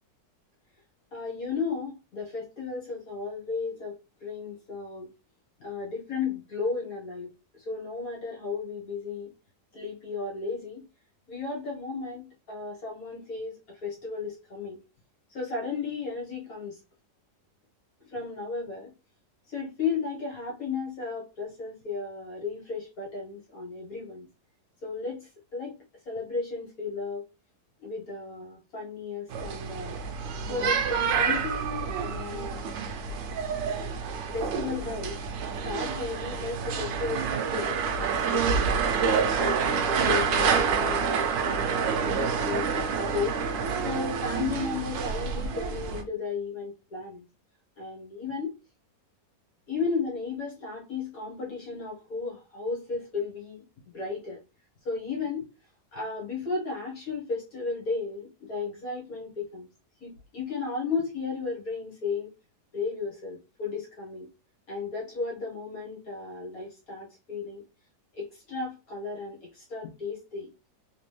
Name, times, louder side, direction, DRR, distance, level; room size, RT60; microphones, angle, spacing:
voice 1, 1.1-5.1 5.6-7.3 7.5-9.3 9.7-10.8 11.3-14.8 15.3-16.8 18.1-18.9 19.5-24.3 24.8-25.8 26.1-27.3 27.8-30.0 30.5-32.6 34.3-35.2 35.6-38.9 39.4-43.4 43.8-47.2 47.8-48.5 49.7-53.7 53.9-54.4 54.8-55.5 55.9-59.7 60.0-62.3 62.7-64.3 64.7-67.6 68.1-70.5, left 4 dB, 55° left, -2 dB, 1.4 m, -34 dB
sound 1, 29.3-46.0, right 6 dB, 85° right, 1.4 m, -28 dB
3.4 x 2.9 x 3.1 m, 0.28 s
omnidirectional pair, 2.0 m